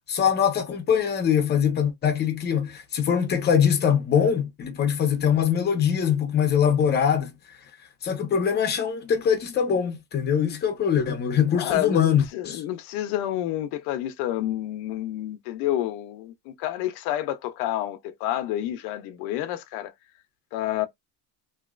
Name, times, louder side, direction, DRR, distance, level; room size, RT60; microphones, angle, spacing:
voice 1, 0.1-7.3 8.0-12.6, left 8 dB, 25° left, 0.8 m, -23 dB
voice 2, 11.5-19.9 20.5-20.9, left 13 dB, 70° left, 0.7 m, -29 dB
3.0 x 2.8 x 2.5 m
cardioid pair, 155°, 42 cm